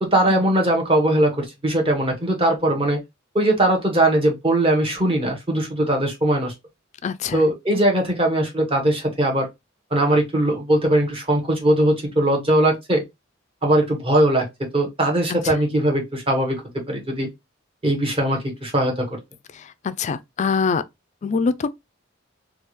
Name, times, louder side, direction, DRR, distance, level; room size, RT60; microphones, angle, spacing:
voice 1, 0.0-3.0 3.3-6.5 7.3-9.5 9.9-13.0 13.6-14.4 14.7-16.6 16.9-17.3 17.8-19.1, right 1 dB, 30° right, 1.2 m, -20 dB
voice 2, 7.0-7.4 15.4-15.6 19.5-20.8 21.2-21.7, left 5 dB, 35° left, 0.3 m, -24 dB
3.4 x 2.4 x 3.1 m
head